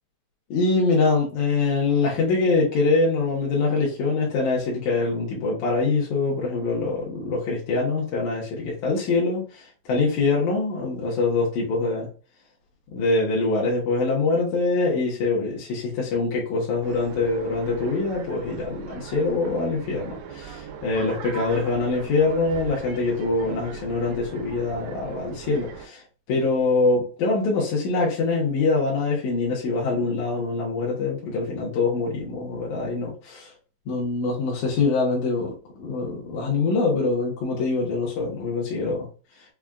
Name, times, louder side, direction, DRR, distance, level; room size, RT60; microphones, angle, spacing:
voice 1, 0.5-12.1 12.9-26.0 26.3-33.5 33.9-39.1, left 3 dB, 85° left, 2.5 m, -24 dB
sound 1, 16.8-25.9, right 7 dB, 90° right, 2.0 m, -39 dB
5.7 x 2.4 x 2.2 m
omnidirectional pair, 3.3 m